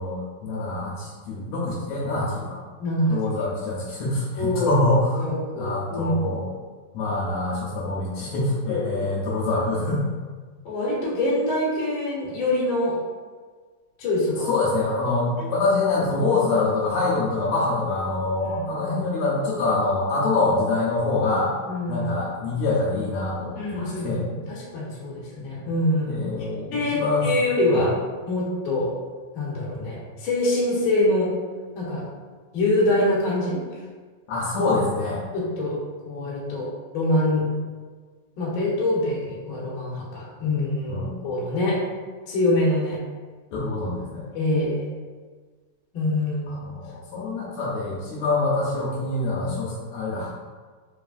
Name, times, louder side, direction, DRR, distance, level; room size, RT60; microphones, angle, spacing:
voice 1, 0.0-2.6 3.1-5.2 5.5-6.5 6.9-10.0 14.5-21.5 21.9-24.2 26.1-27.3 27.7-27.8 34.3-35.2 40.9-41.1 43.5-44.3 46.5-50.3, left 3 dB, 75° left, -6 dB, 1.8 m, -25 dB
voice 2, 2.8-3.2 4.4-4.7 5.2-6.1 8.7-8.8 10.6-13.0 14.0-14.6 15.4-15.5 18.4-18.6 21.7-22.0 22.4-22.5 23.6-26.2 26.7-27.9 28.3-28.9 29.3-31.3 31.7-32.0 32.5-33.6 35.3-35.8 36.0-36.7 36.9-37.5 38.4-41.8 42.3-43.0 44.3-44.8 45.9-46.6, left 1 dB, 60° left, -6 dB, 1.4 m, -24 dB
4.6 x 3.2 x 2.4 m, 1.5 s
omnidirectional pair, 3.4 m